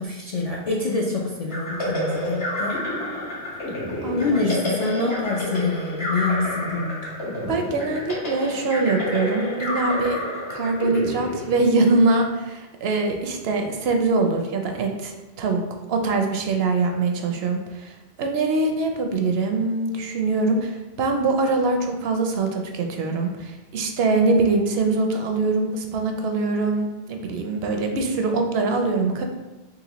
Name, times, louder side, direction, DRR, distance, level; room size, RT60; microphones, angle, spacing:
voice 1, 0.0-2.8 4.2-7.2, left 3 dB, 55° left, -2 dB, 0.4 m, -26 dB
sound 1, 1.5-12.1, left 1 dB, 90° left, 1.6 m, -29 dB
voice 2, 7.5-10.2 10.5-15.6 15.9-29.2, right 3 dB, 70° right, 4 dB, 0.8 m, -23 dB
3.9 x 3.0 x 2.9 m, 1.1 s
omnidirectional pair, 1.1 m